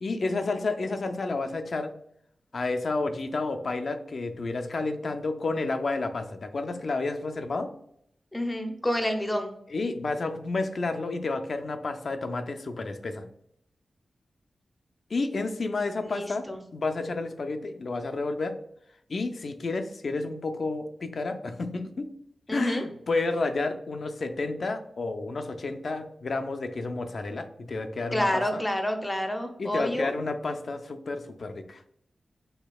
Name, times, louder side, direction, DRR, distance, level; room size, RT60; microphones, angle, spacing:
voice 1, 0.0-1.9 2.5-7.7 9.7-13.3 15.1-16.5 16.7-18.6 19.1-22.1 22.5-28.6 29.6-31.8, left 3 dB, 60° left, 7 dB, 0.4 m, -30 dB
voice 2, 8.3-9.5 16.0-16.6 22.5-22.8 28.1-30.1, left 1 dB, 15° left, 5 dB, 0.6 m, -28 dB
4.2 x 2.7 x 2.3 m, 0.71 s
wide cardioid pair, 75°, 0 cm